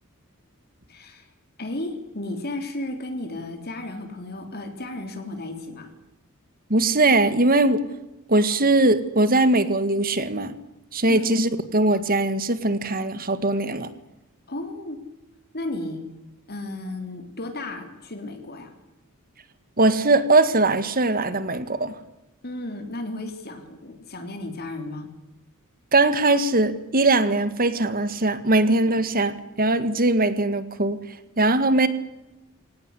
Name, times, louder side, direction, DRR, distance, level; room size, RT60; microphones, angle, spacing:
voice 1, 0.9-1.3 1.6-5.9 11.1-11.2 14.5-15.0 15.5-16.0 16.5-18.7 22.4-25.1, left 2 dB, 50° left, 6 dB, 3.7 m, -34 dB
voice 2, 6.7-7.8 8.3-10.5 10.9-13.9 19.8-22.0 25.9-31.0 31.4-31.9, right 2 dB, 45° right, 13 dB, 1.9 m, -20 dB
24.0 x 18.5 x 10.0 m, 0.99 s
head